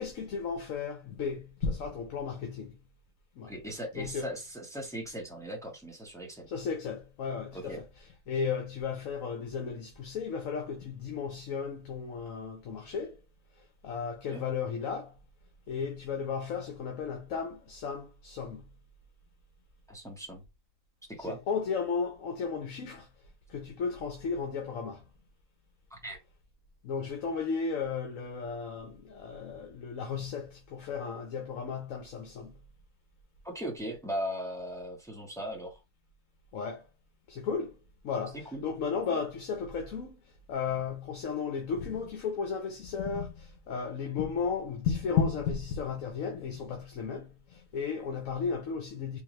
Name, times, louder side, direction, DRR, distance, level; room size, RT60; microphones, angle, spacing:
voice 1, 0.0-2.8 3.4-3.5 4.0-4.3 6.5-13.2 13.8-15.1 15.7-18.7 21.3-23.1 23.5-25.0 26.8-32.6 36.5-36.8 37.3-37.8 38.0-40.2 40.5-49.2, left 6 dB, 70° left, 1.2 m, -34 dB
voice 2, 3.4-6.5 7.5-7.8 14.3-14.4 19.9-20.4 21.1-21.4 25.9-26.2 33.4-35.8 38.5-38.6 39.1-39.2, equal, ahead, 1.1 m, -38 dB
3.9 x 2.8 x 3.1 m
omnidirectional pair, 1.5 m